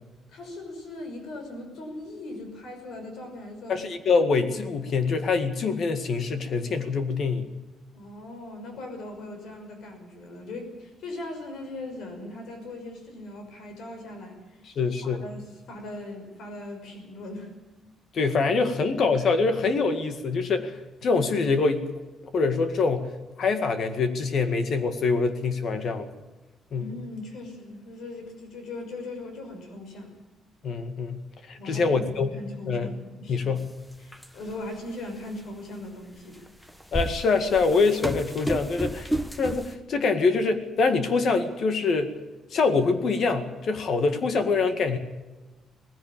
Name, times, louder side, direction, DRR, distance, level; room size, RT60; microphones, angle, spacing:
voice 1, 0.3-3.8 7.9-14.6 15.0-17.5 26.7-30.2 31.6-32.0 32.3-33.4 34.0-36.5, left 2 dB, 65° left, 5 dB, 6.0 m, -39 dB
voice 2, 3.7-7.5 14.8-15.2 18.1-20.8 21.0-21.8 22.3-23.1 23.4-26.1 26.7-26.8 30.6-31.2 31.5-32.3 32.7-32.9 33.3-33.7 36.9-39.1 39.4-42.1 42.5-45.0, left 4 dB, 45° left, 9 dB, 2.0 m, -24 dB
sound 1, 33.6-33.7 34.1-34.7 35.3-35.4 36.5-39.8, equal, 5° left, 1.1 m, -31 dB
19.0 x 16.0 x 8.8 m, 1.1 s
cardioid pair, 165°, 0 cm